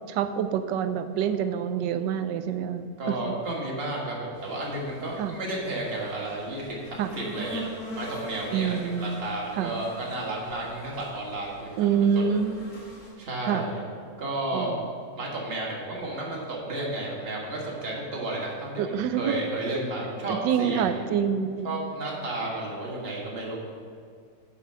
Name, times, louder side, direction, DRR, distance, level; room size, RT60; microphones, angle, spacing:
voice 1, 0.1-3.3 5.2-5.4 7.0-7.1 8.5-9.8 11.8-12.6 13.5-13.7 14.5-14.9 18.8-19.3 20.3-21.7, right 7 dB, 85° right, 10 dB, 1.2 m, -27 dB
voice 2, 3.0-7.6 8.0-12.2 13.2-13.8 14.2-14.7 15.1-21.0 21.6-23.6, right 2 dB, 35° right, -3 dB, 1.7 m, -32 dB
sound 1, 4.3-13.1, equal, 85° left, 3.0 m, -43 dB
8.2 x 6.0 x 5.6 m, 2.2 s
omnidirectional pair, 1.9 m